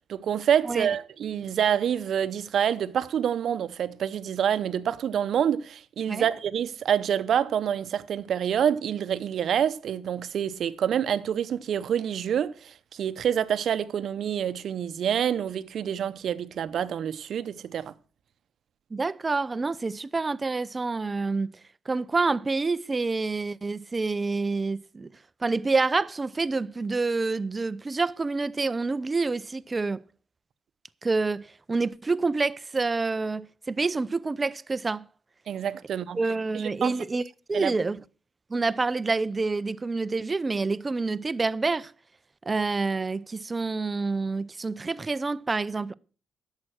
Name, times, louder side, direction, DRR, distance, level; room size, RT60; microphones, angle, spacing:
voice 1, 0.1-17.9 35.5-36.2 36.8-36.9 37.5-37.7, right 9 dB, 65° right, 0.8 m, -27 dB
voice 2, 18.9-21.5 21.9-25.1 25.4-30.0 31.0-35.0 36.1-38.0 38.5-41.9 42.5-45.9, right 3 dB, 25° right, 0.5 m, -27 dB
11.0 x 7.4 x 6.0 m
cardioid pair, 90°, 0 cm